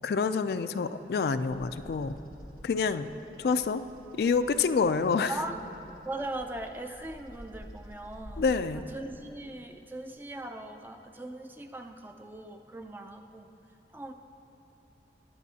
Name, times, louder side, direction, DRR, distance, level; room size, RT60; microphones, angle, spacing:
voice 1, 0.0-2.1 2.6-3.1 3.4-3.8 4.1-5.3 8.4-8.8, left 5 dB, 60° left, 10 dB, 0.3 m, -27 dB
Bird vocalization bird call bird song, 1.5-8.8, equal, 55° right, 1.2 m, -50 dB
voice 2, 6.0-8.5 8.7-13.5 13.9-14.1, right 1 dB, 10° right, 5 dB, 0.4 m, -39 dB
19.5 x 9.4 x 2.8 m, 2.9 s
head